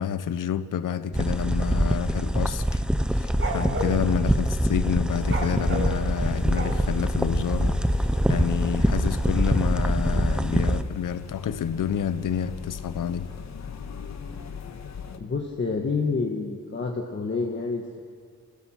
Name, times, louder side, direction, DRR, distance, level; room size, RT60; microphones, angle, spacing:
voice 1, 0.0-2.8 3.1-13.3, left 8 dB, 90° left, 13 dB, 0.9 m, -29 dB
sound 1, 1.1-10.8, equal, 5° right, 0.5 m, -24 dB
sound 2, 3.3-4.0 5.2-7.0, right 2 dB, 40° right, 2.4 m, -31 dB
sound 3, 5.1-15.2, left 6 dB, 60° left, 1.4 m, -39 dB
voice 2, 15.2-18.0, left 4 dB, 35° left, 0 dB, 1.5 m, -28 dB
27.5 x 16.0 x 6.5 m, 2.3 s
wide cardioid pair, 160°, 31 cm